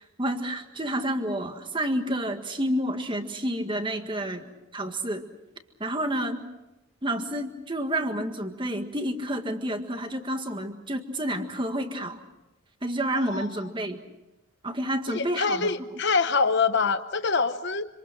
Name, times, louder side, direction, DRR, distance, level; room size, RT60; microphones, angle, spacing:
voice 1, 0.0-4.5 4.7-5.2 5.8-6.5 7.0-12.2 12.8-14.0 14.6-15.7, right 1 dB, 25° right, 6 dB, 1.7 m, -29 dB
voice 2, 15.1-17.8, left 4 dB, 55° left, 10 dB, 0.9 m, -25 dB
26.5 x 26.5 x 6.1 m, 0.99 s
head